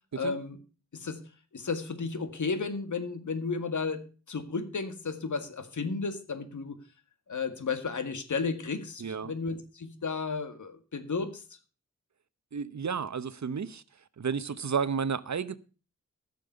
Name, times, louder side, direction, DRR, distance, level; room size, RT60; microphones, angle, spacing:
voice 1, 0.1-0.6 0.9-1.2 1.5-6.8 7.3-11.4, left 4 dB, 90° left, 1.9 m, -33 dB
voice 2, 9.0-9.3 12.5-13.8 14.2-15.5, right 6 dB, 70° right, 0.9 m, -32 dB
13.5 x 7.0 x 6.7 m
wide cardioid pair, 70°, 29 cm